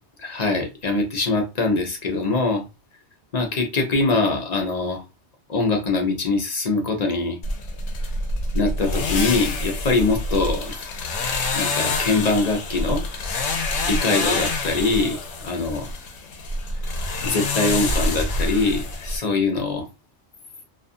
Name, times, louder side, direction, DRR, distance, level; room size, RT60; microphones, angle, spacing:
voice 1, 0.2-2.6 3.3-5.0 5.5-7.4 8.5-10.8 11.5-13.0 13.8-15.9 17.2-19.9, left 3 dB, 45° left, 0.6 m, -23 dB
sound 1, 7.4-19.2, left 2 dB, 75° left, 0.9 m, -26 dB
2.4 x 2.3 x 2.5 m
omnidirectional pair, 1.2 m